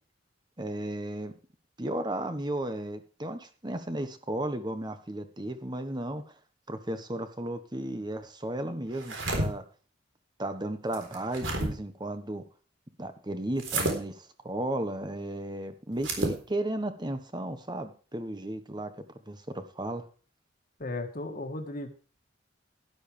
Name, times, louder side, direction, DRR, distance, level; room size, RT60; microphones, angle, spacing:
voice 1, 0.6-1.3 1.8-6.2 6.7-9.6 10.4-12.4 13.0-18.9 19.3-20.0, right 1 dB, 20° right, 9 dB, 1.3 m, -34 dB
sound 1, 8.9-9.5 10.9-11.7 13.6-14.0 16.0-16.4, right 2 dB, 80° right, 3.9 m, -30 dB
voice 2, 20.8-21.9, left 2 dB, 45° left, 4 dB, 1.7 m, -35 dB
12.5 x 12.0 x 3.4 m, 0.38 s
head